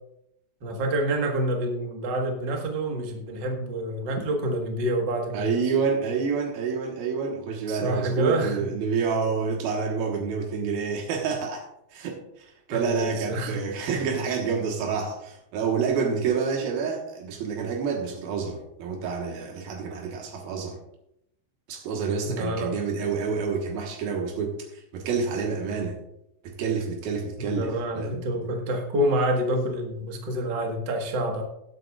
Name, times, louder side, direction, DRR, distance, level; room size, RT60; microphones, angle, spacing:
voice 1, 0.6-5.6 7.7-8.6 12.7-13.6 22.3-22.7 27.4-31.4, right 1 dB, 50° right, 2 dB, 1.4 m, -27 dB
voice 2, 5.3-11.6 11.9-20.8 21.7-25.9 26.4-28.3, right 5 dB, 85° right, 1 dB, 3.2 m, -28 dB
19.5 x 8.0 x 2.4 m, 0.81 s
omnidirectional pair, 4.2 m